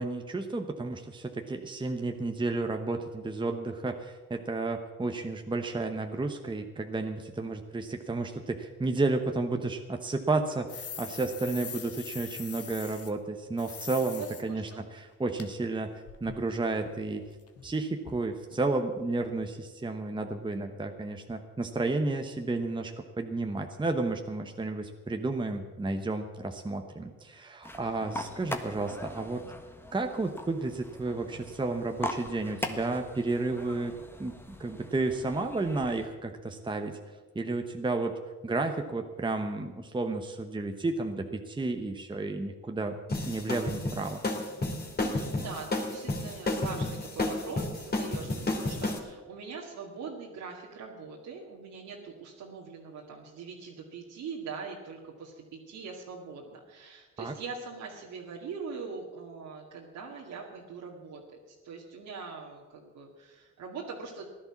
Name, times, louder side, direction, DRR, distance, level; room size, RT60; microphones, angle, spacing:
voice 1, 0.0-17.2 17.6-22.9 23.2-29.4 29.9-33.9 34.2-37.0 37.3-38.1 38.4-43.0 43.2-44.2 57.2-57.3, right 3 dB, 15° right, 4 dB, 1.0 m, -32 dB
sound 1, 10.7-13.1 13.6-14.4 14.7-14.8 15.4-15.5 15.7-17.8 18.1-18.2 18.5-18.6 19.0-19.1 19.4-19.5, left 7 dB, 50° left, 1.6 m, -43 dB
voice 2, 14.2-14.8 27.8-28.1 45.0-61.2 61.5-64.2, right 5 dB, 80° right, -3 dB, 2.2 m, -42 dB
sound 2, 27.6-36.1, left 1 dB, 5° left, 1.4 m, -41 dB
sound 3, 43.1-49.0, left 2 dB, 30° left, 2.8 m, -31 dB
16.0 x 11.0 x 7.2 m, 1.3 s
cardioid pair, 90°, 30 cm